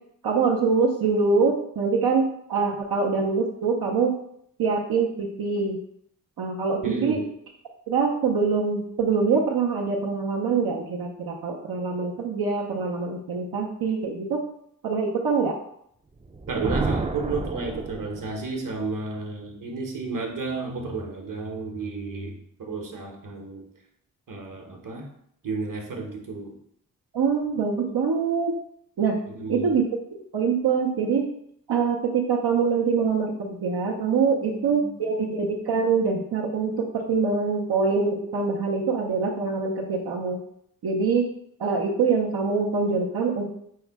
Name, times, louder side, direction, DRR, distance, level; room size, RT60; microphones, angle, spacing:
voice 1, 0.2-4.1 4.6-5.8 6.4-7.2 7.9-14.4 14.8-15.6 27.1-28.5 29.0-29.2 29.5-29.8 30.3-31.3 31.7-40.4 40.8-41.3 41.6-43.4, right 5 dB, 85° right, -3 dB, 0.7 m, -24 dB
voice 2, 6.8-7.2 16.5-23.6 24.3-25.1 25.4-26.5 29.3-29.7 34.4-34.9, right 3 dB, 60° right, 2 dB, 1.0 m, -32 dB
Thunder, 16.2-18.5, right 3 dB, 20° right, 0.4 m, -30 dB
4.7 x 2.1 x 4.6 m, 0.70 s
cardioid pair, 55°, 36 cm